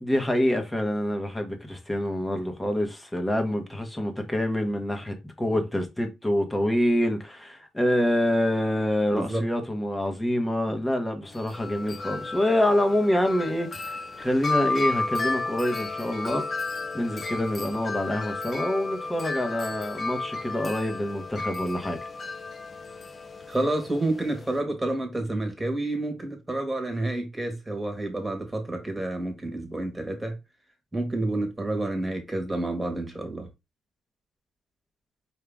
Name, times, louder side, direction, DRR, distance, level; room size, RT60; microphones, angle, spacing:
voice 1, 0.0-16.4 16.9-22.0, left 1 dB, 10° left, 1.1 m, -26 dB
voice 2, 9.1-9.4 10.7-10.8 23.5-30.3 30.9-33.5, right 2 dB, 10° right, 1.5 m, -29 dB
Wind chime, 11.3-24.6, left 3 dB, 35° left, 0.6 m, -33 dB
4.7 x 2.8 x 3.5 m
cardioid pair, 115°, 0 cm